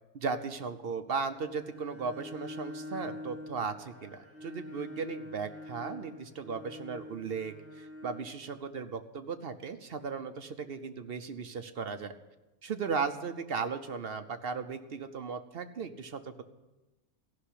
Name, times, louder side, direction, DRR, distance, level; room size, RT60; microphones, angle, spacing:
voice 1, 0.1-12.1 12.6-16.4, right 5 dB, 50° right, 8 dB, 0.8 m, -36 dB
Bowed string instrument, 1.3-8.4, left 1 dB, 10° right, 1.1 m, -45 dB
15.0 x 5.8 x 9.9 m, 1.1 s
omnidirectional pair, 1.4 m